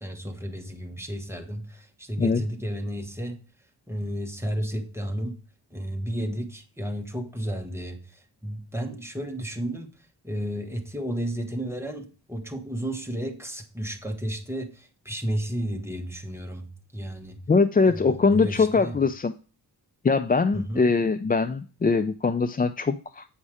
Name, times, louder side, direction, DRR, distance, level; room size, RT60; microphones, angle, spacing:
voice 1, 0.0-3.4 3.9-5.4 5.7-9.9 10.2-17.4 17.9-19.0 20.5-20.9, equal, 5° right, 1.2 m, -32 dB
voice 2, 17.5-19.3 20.0-23.2, left 4 dB, 25° left, 0.3 m, -22 dB
8.7 x 5.3 x 4.8 m
wide cardioid pair, 100°, 40 cm